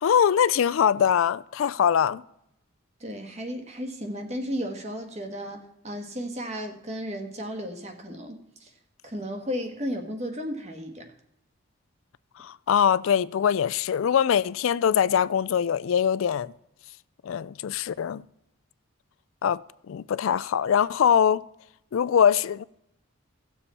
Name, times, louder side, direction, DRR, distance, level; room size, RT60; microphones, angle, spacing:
voice 1, 0.0-2.2 12.4-16.5 17.2-18.2 19.4-19.6 19.9-21.4 21.9-22.6, left 8 dB, 75° left, 0.3 m, -22 dB
voice 2, 3.0-8.7 9.0-11.1, equal, 30° right, 1.5 m, -34 dB
17.0 x 7.0 x 4.2 m
head